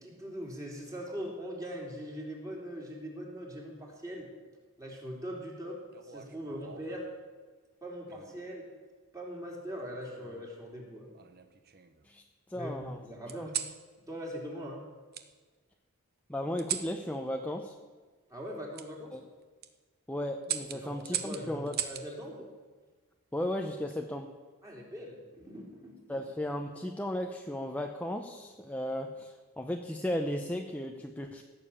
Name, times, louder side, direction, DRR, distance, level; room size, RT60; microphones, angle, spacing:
voice 1, 0.0-4.3 4.8-7.1 7.8-8.7 9.1-11.1 12.5-13.6 14.1-14.8 18.3-19.2 20.7-22.4 24.6-26.0, equal, 15° right, -2 dB, 3.3 m, -41 dB
sound 1, 5.9-7.0 8.1-8.5 9.8-10.5 11.1-12.0 13.3-13.8 15.1-15.3 16.6-16.9 18.7-18.9 19.4-19.7 20.4-22.1 23.6-24.0, right 10 dB, 45° right, 0.9 m, -38 dB
voice 2, 12.5-13.0 13.4-13.5 16.3-17.7 19.1-19.2 20.1-21.7 22.4-22.5 23.3-24.3 26.1-31.4, left 1 dB, 5° left, 3 dB, 0.7 m, -35 dB
16.5 x 7.1 x 8.6 m, 1.4 s
head